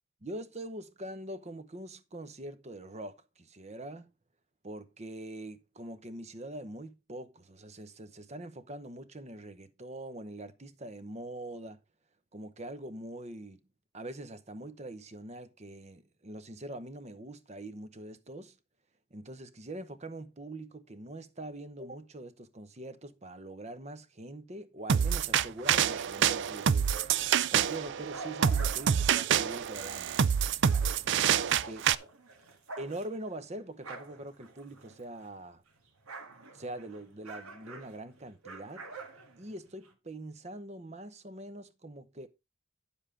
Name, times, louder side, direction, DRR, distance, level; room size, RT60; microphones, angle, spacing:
voice 1, 0.2-4.1 4.6-11.8 12.3-13.6 13.9-18.6 19.1-26.9 27.5-30.2 31.3-31.9 32.8-35.6 36.5-38.9 39.4-42.3, right 1 dB, 30° right, 0.8 m, -43 dB
sound 1, 24.9-31.9, right 8 dB, 55° right, 0.4 m, -27 dB
sound 2, 25.6-27.4 27.8-35.4 35.7-39.9, right 3 dB, 85° right, 1.7 m, -48 dB
9.9 x 7.3 x 3.8 m
head